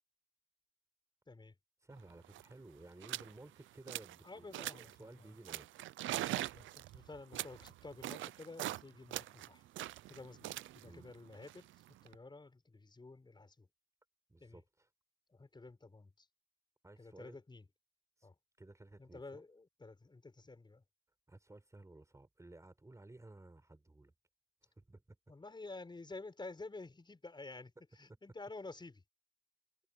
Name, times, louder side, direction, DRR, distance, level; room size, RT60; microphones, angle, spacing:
voice 1, 1.8-5.7 10.8-11.1 14.3-14.9 16.8-17.4 18.2-18.3 18.6-19.4 21.3-24.1 24.6-25.2 28.1-28.2, right 2 dB, 15° right, 5.5 m, -56 dB
sound 1, 2.0-2.1 2.2-2.5 3.0-3.3 3.7-4.2 4.5-5.0 5.5-8.8 9.1-12.1, right 15 dB, 80° right, 0.6 m, -42 dB
voice 2, 4.2-5.3 6.2-9.6 10.1-11.7 12.0-13.7 14.4-14.6 15.3-16.3 17.0-17.6 18.2-18.3 19.0-20.8 25.3-29.0, left 3 dB, 20° left, 6.7 m, -51 dB
cardioid pair, 90°, 20 cm